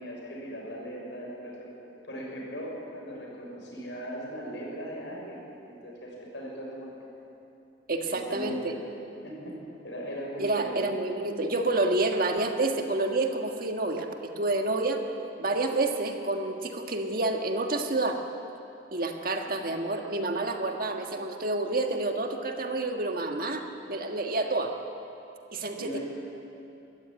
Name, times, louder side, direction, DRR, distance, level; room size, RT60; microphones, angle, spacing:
voice 1, 0.0-1.7 2.0-6.9 8.1-8.8 9.2-10.8 19.4-19.5 25.7-26.0, equal, 80° left, -2 dB, 6.3 m, -39 dB
voice 2, 7.9-8.7 10.4-15.0 15.4-18.2 18.9-23.6 23.9-24.7 25.5-26.0, right 2 dB, 50° right, 4 dB, 1.6 m, -29 dB
23.0 x 13.5 x 9.0 m, 2.9 s
head